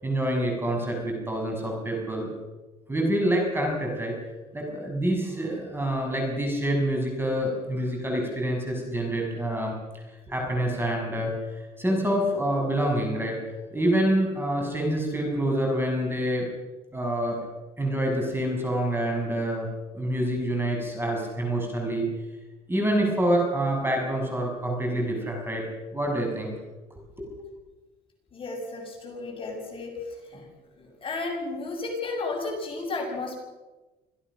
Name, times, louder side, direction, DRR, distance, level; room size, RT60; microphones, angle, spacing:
voice 1, 0.0-2.3 2.9-4.1 4.5-9.7 10.3-13.4 13.7-16.5 16.9-17.4 17.8-19.7 19.9-22.1 22.7-25.6 25.9-26.5 26.9-27.3, right 1 dB, 15° right, 1 dB, 6.7 m, -27 dB
voice 2, 28.3-29.9 30.3-30.4 30.8-33.4, left 3 dB, 30° left, 0 dB, 7.3 m, -33 dB
26.5 x 16.5 x 6.3 m, 1.1 s
cardioid pair, 110°, 17 cm